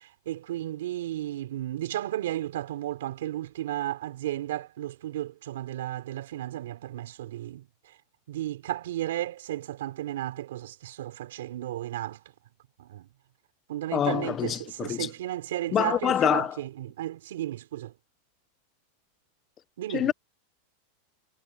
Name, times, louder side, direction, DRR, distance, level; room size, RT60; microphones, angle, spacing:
voice 1, 0.0-7.7 8.3-12.2 12.8-13.1 13.7-17.9 19.8-20.1, right 13 dB, 80° right, 3.1 m, -34 dB
voice 2, 13.9-15.1 15.7-16.6 19.9-20.1, left 9 dB, 30° left, 0.4 m, -26 dB
supercardioid pair, 130°, 0 cm